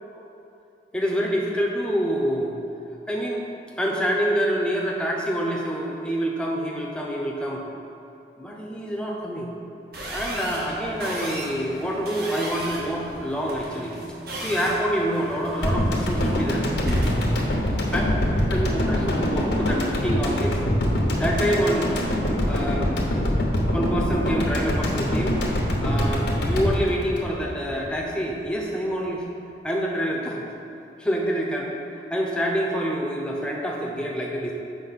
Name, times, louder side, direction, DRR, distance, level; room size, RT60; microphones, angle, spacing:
voice 1, 0.9-2.6 3.1-3.5 3.8-7.6 8.4-9.5 10.1-14.0 14.3-16.7 17.9-18.0 18.5-20.6 21.2-22.0 22.4-22.9 23.7-25.4 25.8-29.2 29.6-30.4 31.0-31.7 32.1-34.5, equal, 5° left, -2 dB, 0.7 m, -26 dB
sound 1, 9.9-19.1, equal, 60° right, 1.1 m, -34 dB
sound 2, 15.6-28.0 28.3-28.4, left 1 dB, 80° left, 1.0 m, -24 dB
6.9 x 5.2 x 4.1 m, 2.8 s
head